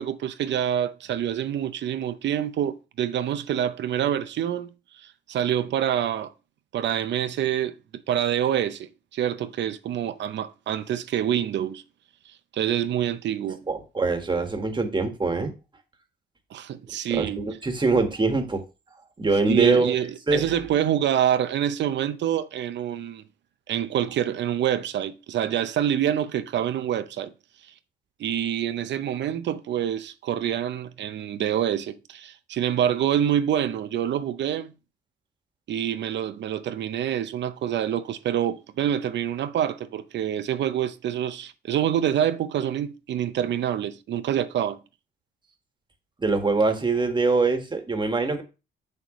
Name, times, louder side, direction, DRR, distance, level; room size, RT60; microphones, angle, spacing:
voice 1, 0.0-6.3 6.7-11.8 12.5-13.6 16.5-17.5 19.5-23.2 23.7-27.3 27.6-27.7 28.2-34.7 35.7-44.8, right 10 dB, 65° right, 0.6 m, -26 dB
voice 2, 13.7-15.5 17.1-18.6 19.2-19.9 20.3-20.4 46.2-48.4, right 3 dB, 25° right, 1.6 m, -23 dB
6.7 x 6.3 x 3.1 m
cardioid pair, 90°, 20 cm